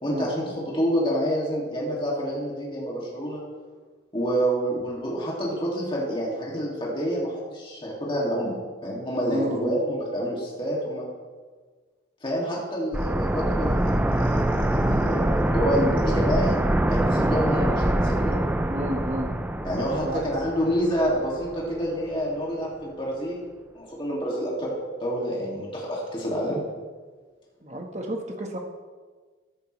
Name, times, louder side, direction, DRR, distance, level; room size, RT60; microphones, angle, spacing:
voice 1, 0.0-3.4 4.1-8.5 8.8-11.1 12.2-16.6 16.9-18.4 19.6-23.4 23.7-26.6, equal, 25° left, -5 dB, 2.5 m, -28 dB
voice 2, 9.3-9.8 18.7-19.3 20.0-20.2 27.6-28.6, equal, 35° right, 2 dB, 1.5 m, -31 dB
sound 1, 12.9-21.7 21.9-22.0, right 1 dB, 10° right, 0.4 m, -24 dB
14.5 x 10.5 x 3.4 m, 1.4 s
head